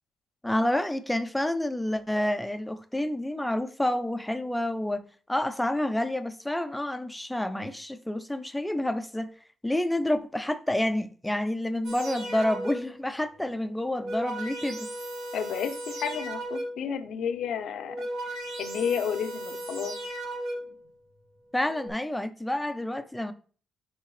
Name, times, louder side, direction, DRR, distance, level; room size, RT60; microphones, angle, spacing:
voice 1, 0.4-5.0 5.3-9.3 9.6-14.9 21.5-23.3, left 1 dB, 5° left, 0.7 m, -29 dB
sound 1, 11.8-13.1 13.8-16.9 17.7-20.9 21.6-21.9, right 1 dB, 70° right, 2.0 m, -36 dB
voice 2, 15.3-20.0, left 7 dB, 75° left, 0.8 m, -32 dB
9.7 x 3.7 x 3.2 m
cardioid pair, 90°, 0 cm